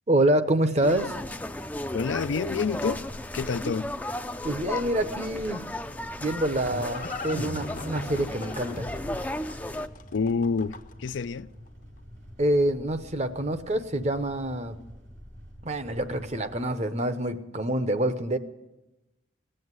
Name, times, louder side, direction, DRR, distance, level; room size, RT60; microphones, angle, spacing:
voice 1, 0.1-1.2 4.4-5.7 6.2-8.9 12.4-14.8 15.6-18.4, right 1 dB, 35° right, 0.8 m, -26 dB
sound 1, 0.8-9.9, left 1 dB, 10° left, 0.4 m, -35 dB
sound 2, 1.1-16.7, equal, 80° right, 4.6 m, -49 dB
voice 2, 1.9-3.0 3.3-3.9 10.1-10.7 11.0-11.5, left 5 dB, 70° left, 0.4 m, -27 dB
Livestock farm animals working animals, 6.0-11.1, left 2 dB, 40° left, 0.7 m, -38 dB
17.5 x 7.8 x 9.5 m
head